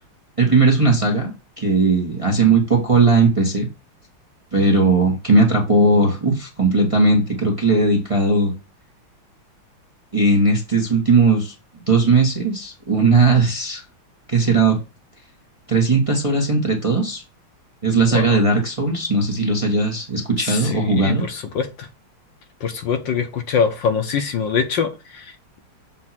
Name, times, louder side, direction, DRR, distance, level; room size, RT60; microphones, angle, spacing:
voice 1, 0.4-3.7 4.5-8.5 10.1-11.5 11.9-13.8 14.3-14.8 15.7-17.2 17.8-21.2, right 3 dB, 20° right, 1.2 m, -18 dB
voice 2, 20.4-21.9 22.6-25.3, left 6 dB, 65° left, 1.5 m, -23 dB
7.4 x 2.7 x 5.8 m
omnidirectional pair, 2.3 m